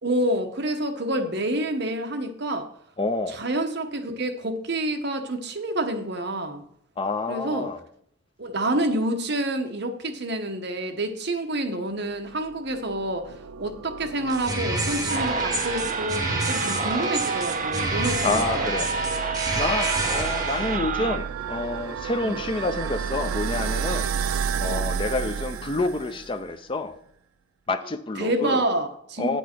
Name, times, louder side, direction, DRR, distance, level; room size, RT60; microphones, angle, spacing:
voice 1, 0.0-2.7 3.3-6.6 7.3-7.7 8.4-13.3 13.6-18.6 21.0-21.1 22.2-22.3 24.6-24.9 28.2-29.4, right 1 dB, 55° right, 1.0 m, -28 dB
voice 2, 3.0-3.4 7.0-7.8 18.2-24.1 24.6-27.0 27.7-28.6 29.2-29.4, left 3 dB, 25° left, 0.5 m, -28 dB
sound 1, 12.3-26.4, right 7 dB, 85° right, 0.4 m, -32 dB
sound 2, 14.3-20.8, right 2 dB, 20° right, 1.2 m, -28 dB
sound 3, 15.1-21.2, right 5 dB, 35° right, 0.6 m, -30 dB
9.3 x 8.3 x 4.4 m
head